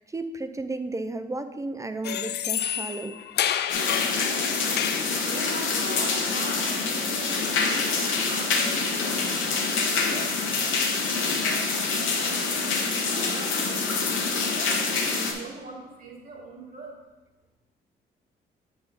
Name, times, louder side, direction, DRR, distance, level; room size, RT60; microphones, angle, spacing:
voice 1, 0.0-3.2, right 2 dB, 15° right, 9 dB, 0.5 m, -33 dB
sound 1, 2.0-5.1, left 10 dB, 55° left, 0.4 m, -29 dB
sound 2, 3.7-15.3, left 4 dB, 75° left, 1.2 m, -26 dB
voice 2, 5.2-10.8 11.4-14.1 14.5-17.0, right 2 dB, 50° right, -3 dB, 2.3 m, -42 dB
7.7 x 4.0 x 5.1 m, 1.2 s
cardioid pair, 90°, 20 cm